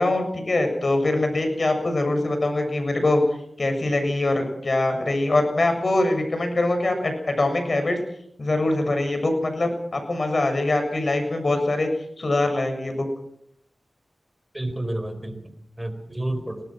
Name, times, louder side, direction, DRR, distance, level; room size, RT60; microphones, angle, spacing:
voice 1, 0.0-3.2 3.6-8.0 8.4-11.9 12.2-13.1, left 2 dB, 55° left, 5 dB, 7.2 m, -23 dB
voice 2, 14.5-16.7, right 1 dB, 15° right, 9 dB, 4.3 m, -31 dB
24.0 x 19.0 x 6.2 m, 0.74 s
wide cardioid pair, 60°, 0 cm